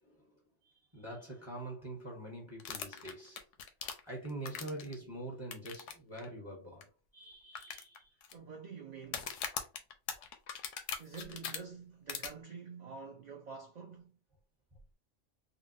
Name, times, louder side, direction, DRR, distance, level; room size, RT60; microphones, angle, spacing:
voice 1, 0.0-3.4 4.1-8.2, right 1 dB, 25° right, 0.9 m, -45 dB
sound 1, 2.6-4.9 5.5-5.9 6.2-6.3 6.8-6.9 7.5-8.3 9.0-11.6 12.1-12.3, left 7 dB, 80° left, 0.9 m, -40 dB
voice 2, 8.3-9.3 11.0-14.2, right 5 dB, 60° right, 0.4 m, -47 dB
3.7 x 2.1 x 2.6 m
omnidirectional pair, 1.3 m